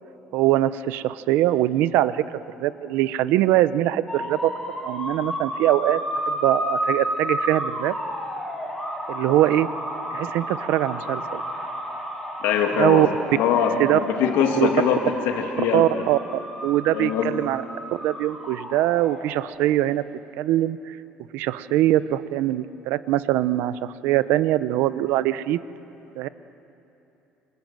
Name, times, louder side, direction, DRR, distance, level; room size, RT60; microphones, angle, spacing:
voice 1, 0.3-2.2 2.6-6.0 6.3-8.0 9.1-9.7 10.1-11.4 12.8-13.1 13.8-14.0 14.6-14.7 15.7-16.2 16.6-17.6 18.0-20.0 20.4-21.0 21.3-25.6 26.2-26.3, right 14 dB, 70° right, 14 dB, 0.8 m, -22 dB
sound 1, 4.1-19.5, equal, 10° left, 4.4 m, -32 dB
voice 2, 12.4-15.0 15.3-16.0 16.9-17.3, left 7 dB, 90° left, 3 dB, 2.8 m, -23 dB
27.5 x 27.0 x 7.8 m, 2.9 s
cardioid pair, 170°, 3 cm